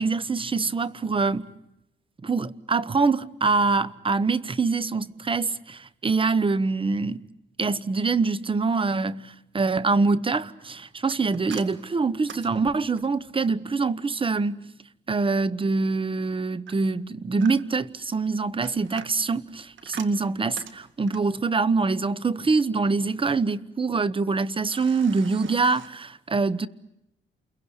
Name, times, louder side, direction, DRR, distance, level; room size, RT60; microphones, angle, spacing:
voice 1, 0.0-1.5 2.2-7.2 7.6-14.6 15.1-26.7, right 4 dB, 25° right, 1.0 m, -24 dB
sound 1, 11.1-13.3 16.7-17.9 18.4-21.4 24.7-25.9, right 7 dB, 70° right, 2.1 m, -44 dB
29.0 x 22.5 x 8.1 m
cardioid pair, 90°, 20 cm